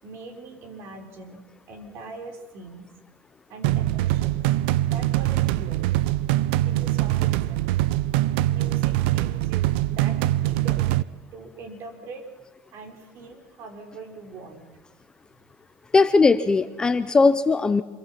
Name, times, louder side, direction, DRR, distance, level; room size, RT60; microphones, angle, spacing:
voice 1, 0.0-1.4 1.7-2.9 3.5-4.4 4.8-5.9 6.6-7.7 8.5-11.0 11.3-12.2 12.7-14.7, right 3 dB, 45° right, 5 dB, 4.3 m, -41 dB
sound 1, 3.6-11.0, right 15 dB, 80° right, 0.7 m, -23 dB
voice 2, 15.9-17.8, left 4 dB, 15° left, 12 dB, 0.7 m, -19 dB
26.0 x 23.0 x 5.9 m, 1.2 s
cardioid pair, 145°, 5 cm